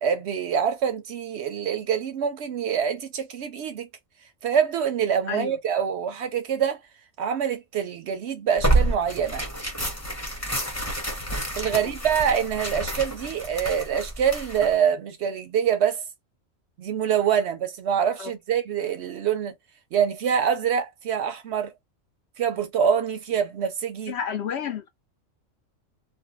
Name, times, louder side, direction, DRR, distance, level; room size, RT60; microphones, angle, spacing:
voice 1, 0.0-3.9 4.4-6.8 7.2-9.4 11.6-16.0 16.8-19.5 19.9-21.7 22.4-24.1, right 8 dB, 65° right, 0.7 m, -25 dB
Tearing, 8.6-14.8, right 2 dB, 15° left, 1.0 m, -28 dB
voice 2, 24.1-24.9, left 8 dB, 65° left, 0.7 m, -31 dB
2.5 x 2.1 x 2.9 m
omnidirectional pair, 1.4 m